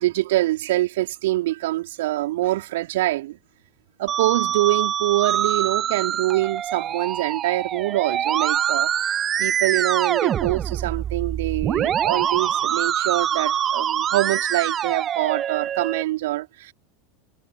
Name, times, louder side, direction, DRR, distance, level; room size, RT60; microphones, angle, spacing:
voice 1, 0.0-3.4 4.0-16.7, right 16 dB, 60° right, 4.5 m, -25 dB
Musical instrument, 4.1-16.0, right 9 dB, 30° right, 1.7 m, -24 dB
figure-of-eight pair, 80°, 0 cm